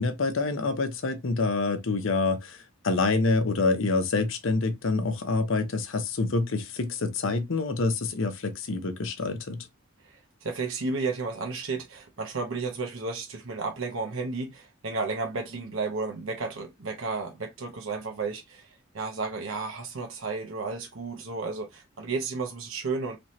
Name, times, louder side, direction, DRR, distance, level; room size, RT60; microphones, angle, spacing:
voice 1, 0.0-2.6 2.8-9.7, left 3 dB, 70° left, 0.7 m, -27 dB
voice 2, 10.1-18.7 18.9-23.2, right 4 dB, 70° right, 0.8 m, -33 dB
3.3 x 2.8 x 3.0 m
head